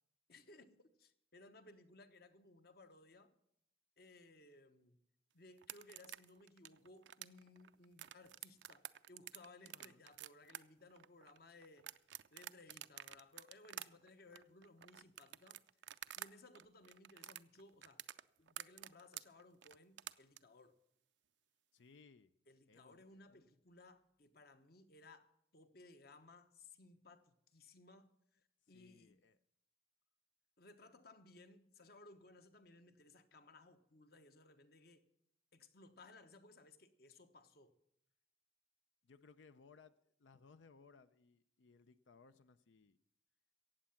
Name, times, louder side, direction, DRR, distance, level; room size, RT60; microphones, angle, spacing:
voice 1, 0.3-3.3 4.0-5.0 5.3-11.9 12.3-15.6 16.2-18.0 18.4-20.8 22.5-28.4 28.7-29.2 30.6-35.1 35.5-37.7, left 2 dB, 55° left, 1.1 m, -61 dB
sound 1, 5.6-16.3 16.5-20.4, right 12 dB, 70° right, 0.4 m, -50 dB
voice 2, 21.7-22.3 22.7-23.5 28.7-29.4 39.0-43.0, left 4 dB, 80° left, 0.6 m, -64 dB
15.0 x 8.8 x 7.1 m
head